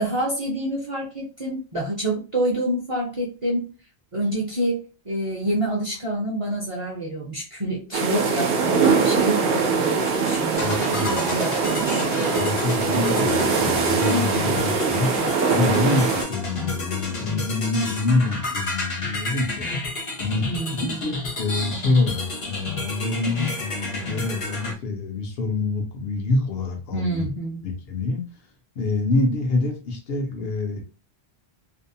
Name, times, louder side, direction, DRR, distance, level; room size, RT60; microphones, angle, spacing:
voice 1, 0.0-3.7 4.1-12.1 20.4-21.1 26.9-27.6, right 1 dB, 40° right, 0.6 m, -27 dB
sound 1, 7.9-16.2, right 5 dB, 70° right, 0.8 m, -22 dB
sound 2, 10.5-24.7, left 2 dB, 40° left, 0.6 m, -30 dB
voice 2, 10.6-11.4 12.4-15.2 15.5-19.7 20.2-27.2 27.6-28.2 28.8-30.8, left 3 dB, 70° left, 0.8 m, -26 dB
2.6 x 2.0 x 2.6 m
omnidirectional pair, 1.1 m